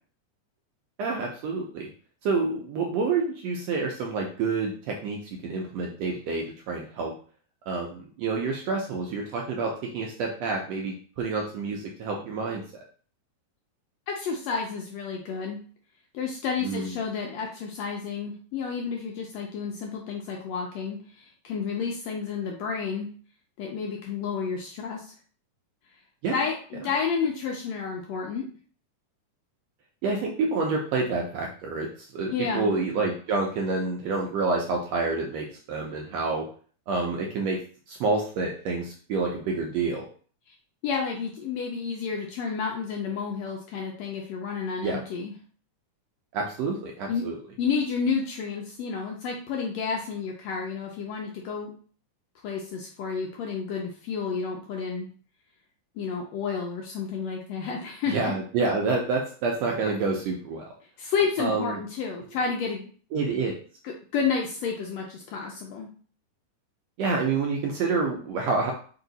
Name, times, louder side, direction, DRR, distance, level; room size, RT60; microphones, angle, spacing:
voice 1, 1.0-1.9 2.2-7.1 7.7-12.6 16.6-16.9 26.2-26.4 30.0-36.5 36.9-37.6 37.9-40.0 44.8-45.0 46.3-47.3 58.1-60.6 61.4-61.8 63.1-63.5 67.0-68.7, right 4 dB, 75° right, 0 dB, 1.6 m, -28 dB
voice 2, 14.1-15.6 16.1-23.1 23.6-25.1 26.3-28.5 32.3-32.7 40.8-45.3 47.1-47.2 47.6-51.7 52.4-55.1 56.0-58.1 61.0-62.9 63.8-65.9, left 5 dB, 75° left, 0 dB, 1.5 m, -30 dB
4.9 x 2.7 x 3.9 m, 0.43 s
omnidirectional pair, 3.5 m